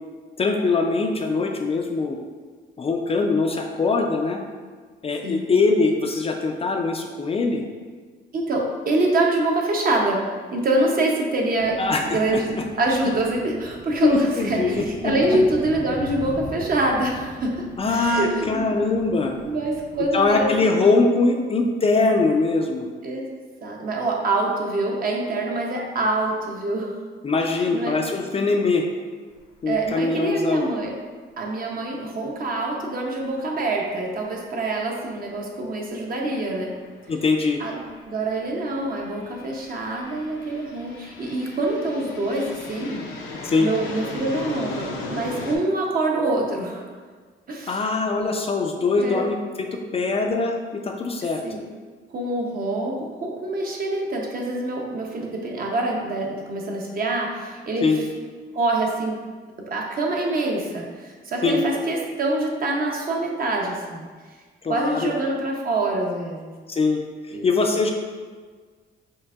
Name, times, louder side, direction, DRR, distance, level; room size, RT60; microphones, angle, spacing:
voice 1, 0.4-2.2 2.8-4.4 5.0-7.6 11.8-12.4 14.0-15.1 17.8-19.3 20.1-22.9 27.2-28.8 29.6-30.6 37.1-37.6 43.4-43.7 47.7-49.7 49.9-51.4 57.8-58.0 61.4-61.6 64.6-65.1 66.7-67.0 67.3-67.9, left 3 dB, 30° left, 2 dB, 0.3 m, -22 dB
voice 2, 8.3-17.6 17.9-18.7 19.4-20.9 23.0-23.3 23.6-26.9 27.6-28.0 29.7-30.9 31.4-36.7 37.6-37.8 38.1-43.0 43.6-46.9 47.5-47.8 49.0-49.3 51.4-51.7 52.1-58.0 58.5-59.2 59.6-64.1 64.7-66.5 67.3-67.5, right 2 dB, 45° right, 0 dB, 0.7 m, -25 dB
sound 1, 11.6-20.5, equal, 65° right, 1.2 m, -41 dB
sound 2, 29.4-29.5 29.8-29.9 34.0-34.1 35.2-35.3 36.0-45.6, left 3 dB, 85° left, 0.6 m, -37 dB
4.6 x 2.6 x 2.4 m, 1.5 s
cardioid pair, 90°, 20 cm